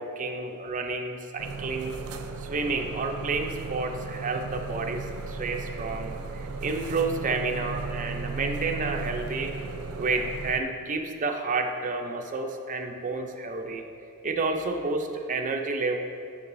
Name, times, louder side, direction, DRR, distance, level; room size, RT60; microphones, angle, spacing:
voice 1, 0.0-2.0 2.4-9.5 10.0-13.8 14.2-16.0, right 3 dB, 35° right, 4 dB, 0.5 m, -30 dB
sound 1, 1.4-10.6, right 4 dB, 80° right, 0.5 m, -36 dB
9.8 x 6.8 x 2.6 m, 2.5 s
head